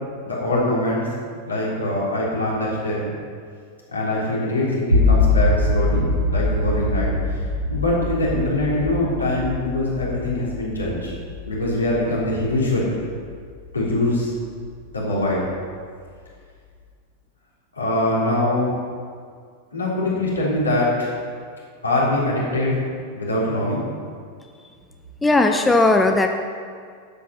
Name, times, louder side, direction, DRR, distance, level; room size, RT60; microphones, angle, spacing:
voice 1, 0.2-1.1 1.5-3.1 3.9-7.4 7.7-11.1 11.5-13.0 13.7-14.3 14.9-15.5 17.7-18.7 19.7-21.1 21.8-22.8 23.1-23.8, left 1 dB, 75° left, -6 dB, 3.5 m, -23 dB
sound 1, 4.9-14.9, left 2 dB, 85° right, 1.4 m, -24 dB
voice 2, 25.2-26.3, left 2 dB, 10° left, 5 dB, 0.7 m, -17 dB
11.0 x 8.4 x 5.8 m, 2.1 s
figure-of-eight pair, 90°, 0 cm